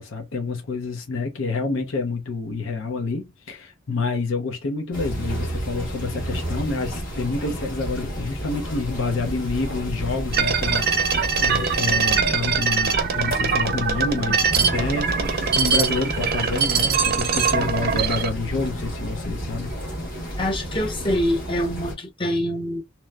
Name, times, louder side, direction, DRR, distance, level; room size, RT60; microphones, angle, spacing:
voice 1, 0.0-19.7, left 3 dB, 75° left, 0.6 m, -28 dB
sound 1, 4.9-21.9, equal, 45° left, 1.2 m, -31 dB
sound 2, 10.3-18.3, right 6 dB, 50° right, 0.5 m, -22 dB
voice 2, 20.4-22.8, equal, 25° left, 0.7 m, -25 dB
2.9 x 2.0 x 2.2 m
head